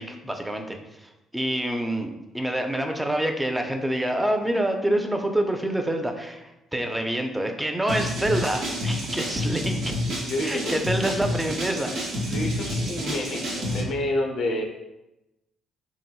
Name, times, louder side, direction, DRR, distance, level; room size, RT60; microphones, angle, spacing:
voice 1, 0.0-9.9 10.4-11.9 12.2-12.4, right 1 dB, 10° right, 4 dB, 0.4 m, -27 dB
sound 1, 7.9-13.8, left 1 dB, 65° right, 0.8 m, -29 dB
voice 2, 10.3-10.8 12.3-14.6, left 1 dB, 65° left, 2 dB, 0.5 m, -29 dB
2.9 x 2.6 x 2.2 m, 0.94 s
hypercardioid pair, 55°, 0 cm